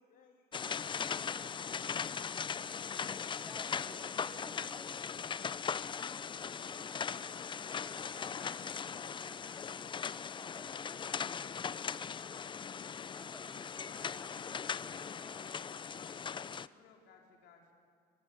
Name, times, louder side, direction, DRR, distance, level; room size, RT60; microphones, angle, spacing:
voice 1, 0.0-1.7, left 5 dB, 55° left, 1 dB, 2.7 m, -67 dB
sound 1, 0.5-16.7, left 6 dB, 30° left, 0.5 m, -39 dB
voice 2, 3.4-5.9 7.8-11.4 12.7-15.6, equal, 5° left, 1 dB, 3.5 m, -57 dB
voice 3, 14.0-17.7, left 5 dB, 85° left, 1 dB, 4.2 m, -61 dB
26.5 x 17.0 x 9.6 m, 2.2 s
cardioid pair, 110°, 17 cm